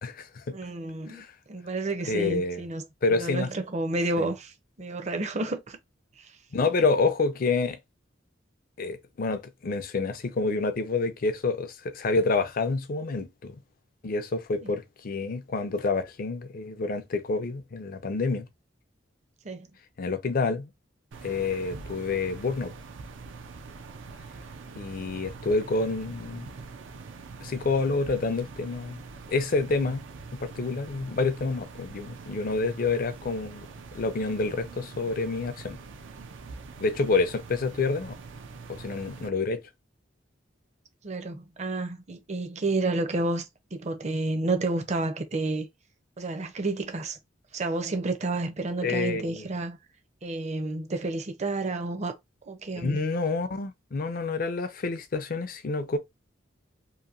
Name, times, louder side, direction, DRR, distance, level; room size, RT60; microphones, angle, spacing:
voice 1, 0.0-0.6 1.1-1.3 2.1-2.6 3.0-3.5 4.2-4.3 6.5-7.8 8.8-13.6 14.0-18.5 20.0-20.7 21.2-22.7 24.8-26.5 27.4-29.0 29.3-30.0 30.3-33.7 33.9-35.8 36.8-38.2 38.7-39.6 48.8-49.5 52.8-56.0, left 3 dB, 50° left, 0.5 m, -28 dB
voice 2, 0.5-5.8 6.2-6.3 14.6-14.7 19.4-19.7 41.0-45.7 46.2-47.2 47.5-49.8 50.2-52.2 52.4-53.0, right 2 dB, 35° right, 0.6 m, -30 dB
sound 1, 21.1-39.3, right 4 dB, 85° right, 0.5 m, -44 dB
2.8 x 2.6 x 2.4 m
head